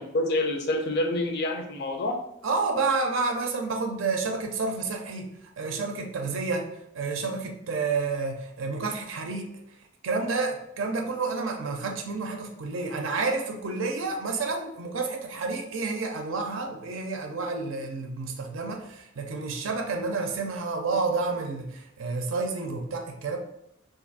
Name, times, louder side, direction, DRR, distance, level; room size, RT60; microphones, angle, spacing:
voice 1, 0.1-2.2, left 1 dB, 55° left, 4 dB, 0.5 m, -27 dB
voice 2, 2.4-5.3 5.6-9.5 10.0-23.4, right 4 dB, 70° right, 3 dB, 0.5 m, -30 dB
2.5 x 2.5 x 3.9 m, 0.78 s
head